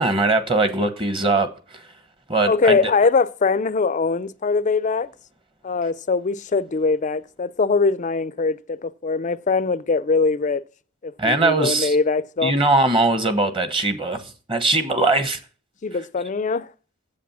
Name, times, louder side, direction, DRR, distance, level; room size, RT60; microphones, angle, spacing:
voice 1, 0.0-1.8 2.3-2.8 11.2-12.0 12.4-15.4, right 2 dB, 25° right, 1.1 m, -21 dB
voice 2, 2.5-5.1 5.6-10.6 11.0-12.5 15.8-16.7, left 4 dB, 35° left, 0.4 m, -22 dB
8.5 x 7.9 x 7.2 m
head